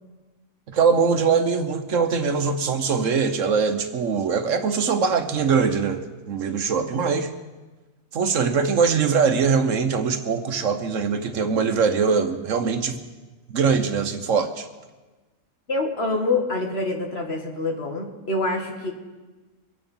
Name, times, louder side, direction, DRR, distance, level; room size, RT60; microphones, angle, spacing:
voice 1, 0.7-7.3 8.1-13.0 13.5-14.7, right 5 dB, 65° right, 8 dB, 1.3 m, -22 dB
voice 2, 15.7-18.9, left 2 dB, 45° left, 2 dB, 2.0 m, -26 dB
23.5 x 9.1 x 5.5 m, 1.2 s
omnidirectional pair, 1.5 m